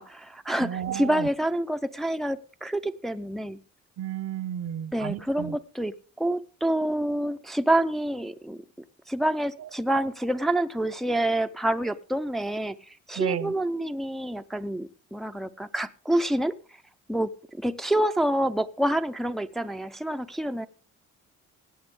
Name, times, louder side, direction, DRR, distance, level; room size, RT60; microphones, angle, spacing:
voice 1, 0.0-3.6 4.9-8.6 9.1-16.5 17.1-20.7, right 1 dB, ahead, 0.6 m, -27 dB
voice 2, 0.6-1.3 4.0-5.6 9.6-9.7 13.2-13.6, right 10 dB, 55° right, 0.8 m, -32 dB
17.0 x 8.4 x 3.7 m
cardioid pair, 90°, 30 cm